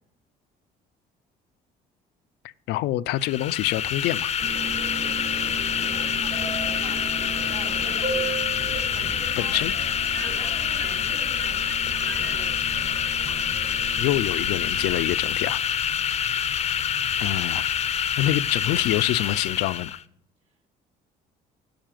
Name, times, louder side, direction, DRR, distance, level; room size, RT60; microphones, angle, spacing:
voice 1, 2.7-4.3 9.4-9.8 14.0-15.9 17.2-17.8 18.2-20.0, left 15 dB, 85° left, 0.5 m, -26 dB
sound 1, 3.1-20.0, left 8 dB, 40° left, 0.6 m, -26 dB
Subway metro underground, 4.4-15.1, right 4 dB, 55° right, 4.6 m, -35 dB
voice 2, 5.7-8.2 8.9-9.6 10.2-12.6, right 2 dB, 40° right, 4.3 m, -45 dB
10.5 x 7.3 x 7.5 m
cardioid pair, 110°, 17 cm